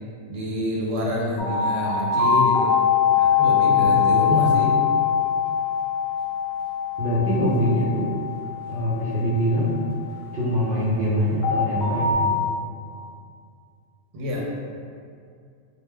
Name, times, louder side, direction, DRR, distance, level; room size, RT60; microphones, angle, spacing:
voice 1, 0.3-2.7 3.1-4.8 14.1-14.4, equal, 75° right, -3 dB, 0.9 m, -27 dB
sound 1, 1.4-10.5 11.4-12.1, left 7 dB, 75° left, 0.9 m, -22 dB
voice 2, 3.7-4.4 7.0-8.0 8.7-9.7 10.3-12.4, equal, 55° right, -9 dB, 0.6 m, -24 dB
2.4 x 2.2 x 3.2 m, 2.3 s
omnidirectional pair, 1.3 m